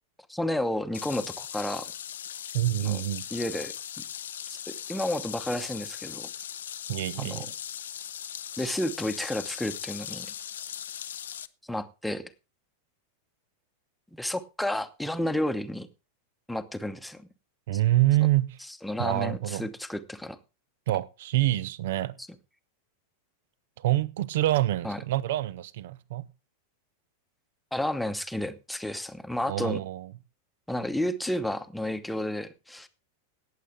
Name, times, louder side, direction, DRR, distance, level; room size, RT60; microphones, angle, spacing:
voice 1, 0.3-1.9 2.8-3.0 3.3-3.7 4.5-6.3 7.2-7.5 8.6-10.3 11.7-12.3 14.1-15.9 16.5-17.3 18.8-20.4 22.2-22.3 24.8-25.0 27.7-29.8 30.7-32.9, left 1 dB, 5° left, 1.0 m, -31 dB
sound 1, 0.9-11.5, left 10 dB, 65° left, 0.5 m, -39 dB
voice 2, 2.5-3.2 6.9-7.5 17.7-18.6 19.0-19.7 20.9-22.2 23.8-26.3 29.4-30.1, right 15 dB, 55° right, 0.6 m, -26 dB
18.0 x 7.6 x 3.6 m
figure-of-eight pair, 90°, 0 cm